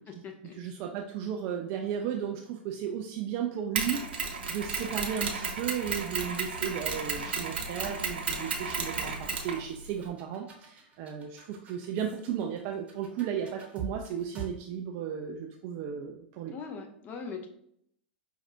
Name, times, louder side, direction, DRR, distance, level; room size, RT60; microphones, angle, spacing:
voice 1, 0.0-0.5 16.5-17.5, left 5 dB, 30° left, 3 dB, 0.6 m, -41 dB
voice 2, 0.5-16.5, right 8 dB, 45° right, 2 dB, 0.4 m, -35 dB
Mechanisms, 3.8-10.1, right 5 dB, 70° right, 0.8 m, -33 dB
sound 1, 9.0-14.4, right 6 dB, 20° right, 1.0 m, -44 dB
5.3 x 2.4 x 2.7 m, 0.70 s
figure-of-eight pair, 95°, 6 cm